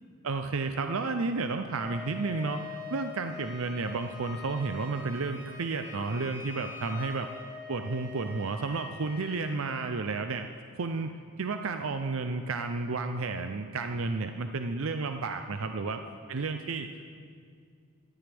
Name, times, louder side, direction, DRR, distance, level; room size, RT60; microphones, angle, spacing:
voice 1, 0.2-7.3 7.7-10.5 10.7-11.1 11.4-16.0 16.3-16.9, right 3 dB, 70° right, 7 dB, 0.6 m, -32 dB
Wind instrument woodwind instrument, 1.7-9.6, left 5 dB, 20° right, 3.3 m, -44 dB
18.0 x 13.5 x 3.5 m, 2.2 s
head